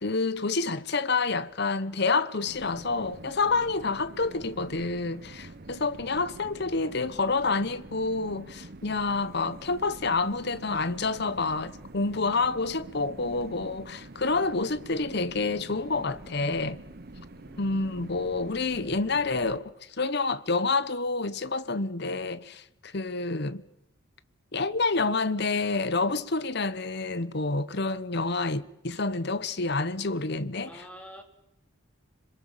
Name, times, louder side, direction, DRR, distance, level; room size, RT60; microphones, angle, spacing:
voice 1, 0.0-16.8 17.6-23.6 24.5-30.7, left 3 dB, 50° left, 1.0 m, -28 dB
sound 1, 2.4-19.6, right 2 dB, 45° right, 1.0 m, -46 dB
voice 2, 4.2-4.5 6.0-6.7 17.4-18.3 30.6-31.2, equal, 5° left, 2.9 m, -51 dB
26.5 x 22.5 x 7.3 m
head